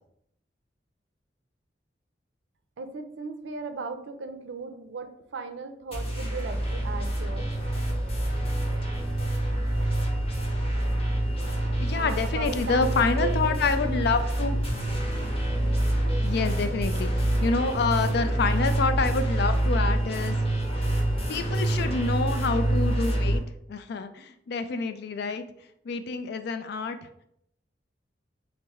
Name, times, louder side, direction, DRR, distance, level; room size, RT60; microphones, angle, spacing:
voice 1, 2.8-7.5 11.8-13.6, right 4 dB, 75° right, 7 dB, 0.5 m, -37 dB
sound 1, 5.9-23.4, right 1 dB, 35° left, 0.8 m, -26 dB
voice 2, 11.8-14.6 16.2-20.4 21.3-23.4 23.7-25.4 25.9-27.0, left 4 dB, 60° left, 10 dB, 0.4 m, -27 dB
3.6 x 3.0 x 3.5 m, 0.74 s
head